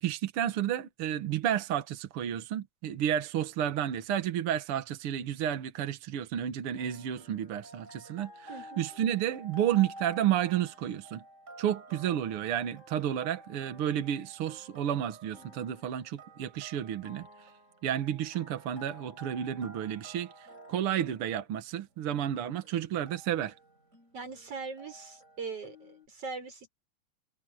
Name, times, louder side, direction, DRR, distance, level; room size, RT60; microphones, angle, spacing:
voice 1, 0.0-8.5 8.8-11.2 11.6-17.3 17.8-23.5, right 10 dB, 65° right, 1.4 m, -31 dB
sound 1, 6.8-26.1, equal, 20° right, 5.8 m, -52 dB
voice 2, 8.5-8.9 24.1-26.7, right 4 dB, 40° right, 6.4 m, -41 dB
omnidirectional pair, 4.0 m